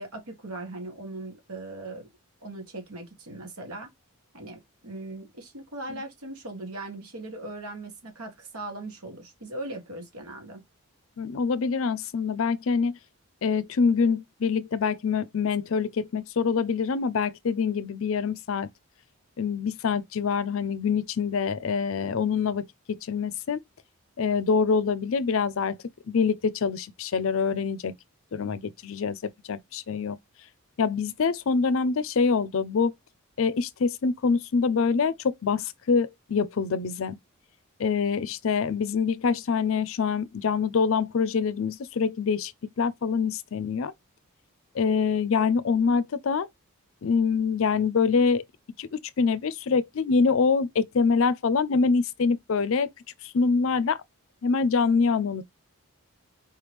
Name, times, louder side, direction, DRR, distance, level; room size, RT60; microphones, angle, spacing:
voice 1, 0.0-2.0 2.4-3.9 4.3-10.6, right 2 dB, 85° right, 1.9 m, -39 dB
voice 2, 11.2-13.0 13.4-18.7 19.4-23.6 24.2-25.8 26.1-27.9 28.3-30.2 30.8-32.9 33.4-37.2 37.8-43.9 44.7-46.5 47.0-48.4 48.8-52.9 53.2-54.0 54.4-55.4, left 5 dB, 65° left, 0.4 m, -25 dB
4.5 x 3.2 x 3.3 m
head